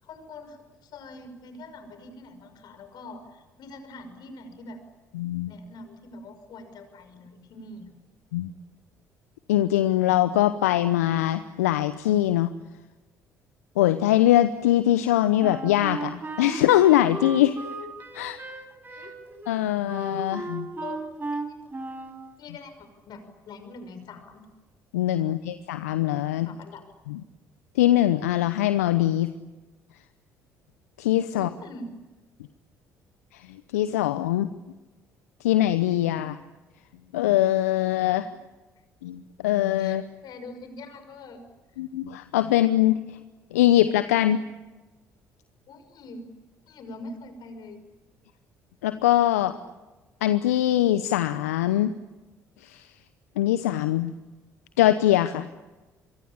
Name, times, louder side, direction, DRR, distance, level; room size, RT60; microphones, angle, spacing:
voice 1, 0.0-4.8 5.5-8.0 19.0-19.1 20.8-21.0 21.3-21.6 22.4-24.4 25.4-25.5 26.5-26.8 31.3-31.9 39.8-41.4 45.7-46.3 46.7-47.8 49.4-49.7, left 2 dB, 55° left, 8 dB, 5.8 m, -43 dB
voice 2, 5.1-5.5 8.3-8.5 9.5-12.5 13.8-17.5 18.1-18.4 19.0-19.1 19.5-20.7 24.9-26.5 27.1-27.2 27.8-29.3 31.0-31.5 33.3-33.5 33.7-34.5 35.4-36.4 37.1-38.3 39.0-40.0 41.8-43.2 43.5-44.4 48.8-49.5 50.2-51.9 52.6-52.8 53.4-54.1 54.8-55.5, left 13 dB, 80° left, 12 dB, 0.8 m, -22 dB
Wind instrument woodwind instrument, 15.4-22.2, right 2 dB, 25° right, 5.2 m, -35 dB
26.5 x 23.5 x 8.7 m, 1.1 s
hypercardioid pair, 55°, 8 cm